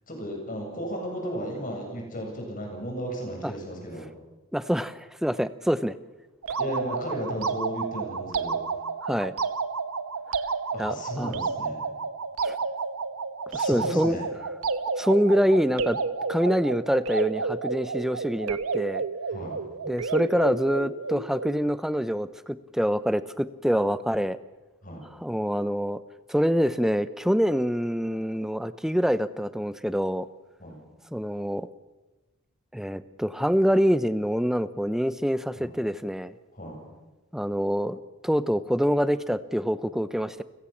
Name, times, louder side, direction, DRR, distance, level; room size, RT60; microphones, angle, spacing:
voice 1, 0.1-4.1 6.6-8.6 10.7-11.8 13.5-14.3 19.3-19.5 24.8-25.0 30.6-30.8 35.6-35.7 36.5-36.8, equal, 40° left, 1 dB, 7.6 m, -34 dB
voice 2, 4.5-6.0 9.0-9.3 10.8-11.3 12.4-12.6 13.5-14.2 15.0-16.0 16.3-19.0 19.9-24.4 25.2-26.0 26.3-30.3 31.1-31.7 32.7-36.3 37.3-40.4, equal, ahead, 14 dB, 0.7 m, -25 dB
sound 1, 6.4-21.7, right 4 dB, 85° right, 1.1 m, -31 dB
30.0 x 16.5 x 7.3 m, 1.2 s
head